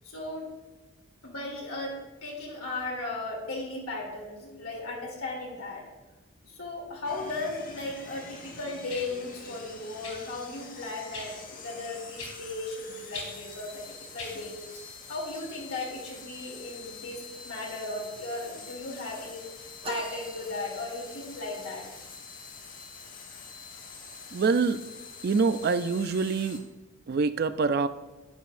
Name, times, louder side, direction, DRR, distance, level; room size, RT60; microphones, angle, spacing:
voice 1, 0.0-0.5 1.2-5.9 6.4-13.8 14.1-14.5 15.1-19.5 19.9-21.8, left 2 dB, 85° left, -2 dB, 3.0 m, -36 dB
sound 1, 7.0-26.6, left 4 dB, 40° left, 1.2 m, -46 dB
sound 2, 8.9-9.1 10.0-10.2 11.1-11.3 12.2-12.4 13.1-13.3 14.2-14.3 15.3-15.4, left 3 dB, 65° left, 3.2 m, -39 dB
sound 3, 19.8-21.5, right 3 dB, 25° right, 0.7 m, -41 dB
voice 2, 24.3-24.8 25.2-26.6 27.1-27.9, right 4 dB, 45° right, 12 dB, 0.4 m, -25 dB
11.0 x 10.0 x 2.6 m, 1.1 s
head